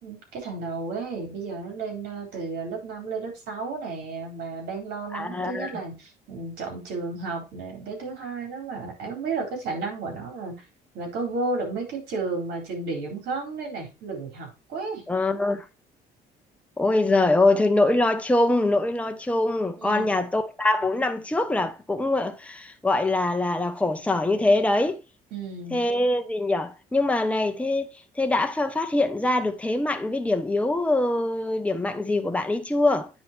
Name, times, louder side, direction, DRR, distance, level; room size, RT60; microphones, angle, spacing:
voice 1, 0.0-10.5 10.9-15.0 19.8-20.2 25.3-25.8, right 3 dB, 75° right, 4.1 m, -33 dB
voice 2, 5.1-5.7 15.1-15.6 16.8-25.0 25.7-27.9 28.2-33.1, left 2 dB, 5° left, 1.0 m, -23 dB
9.4 x 4.1 x 4.4 m
cardioid pair, 110°, 17 cm